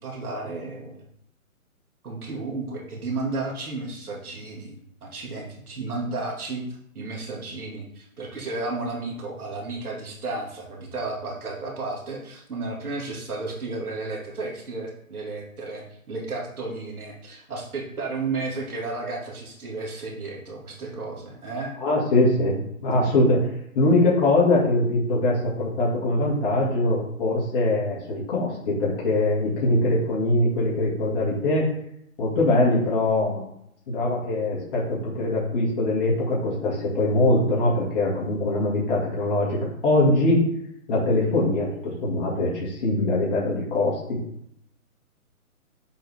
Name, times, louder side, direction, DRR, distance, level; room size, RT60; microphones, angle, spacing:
voice 1, 0.0-1.1 2.0-6.6 6.9-21.7, right 3 dB, 80° right, -2 dB, 2.5 m, -33 dB
voice 2, 21.8-23.5 23.7-31.7 32.2-33.4 33.9-40.5 40.9-44.2, left 2 dB, 40° left, -6 dB, 2.4 m, -22 dB
7.7 x 3.9 x 3.7 m, 0.74 s
hypercardioid pair, 150°, 43 cm